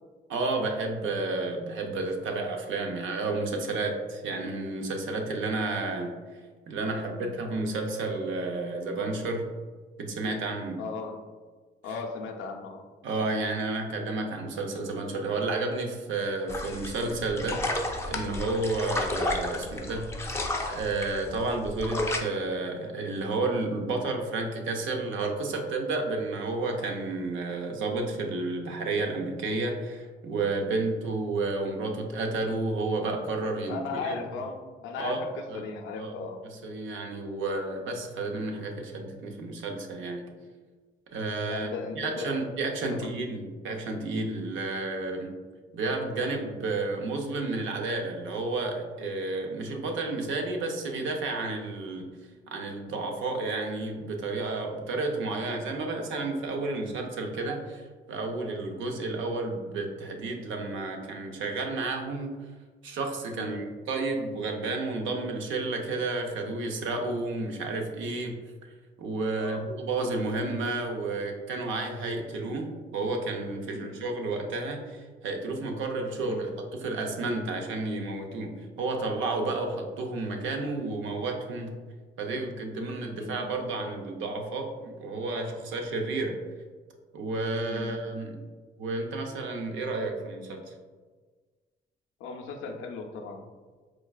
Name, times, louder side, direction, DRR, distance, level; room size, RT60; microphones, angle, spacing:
voice 1, 0.3-6.2 6.7-9.5 10.0-10.8 13.0-17.7 18.1-20.1 20.7-34.2 35.0-35.2 35.5-35.6 36.0-36.1 36.5-40.3 41.1-45.3 45.7-52.1 52.5-62.3 62.8-68.4 69.0-81.7 82.2-86.4 87.1-88.4 88.8-90.6, right 3 dB, 75° right, 3 dB, 0.6 m, -31 dB
voice 2, 10.8-11.2 11.8-12.8 33.7-36.4 41.5-42.4 42.9-43.1 63.3-63.6 69.3-69.6 73.7-74.0 76.2-76.4 83.2-83.4 87.7-88.0 92.2-93.4, left 4 dB, 80° left, 3 dB, 0.5 m, -37 dB
Wasser - Badewanne voll Plätschern, 16.5-22.2, left 2 dB, 15° left, 0.4 m, -32 dB
4.5 x 2.3 x 2.3 m, 1.4 s
cardioid pair, 90°, 20 cm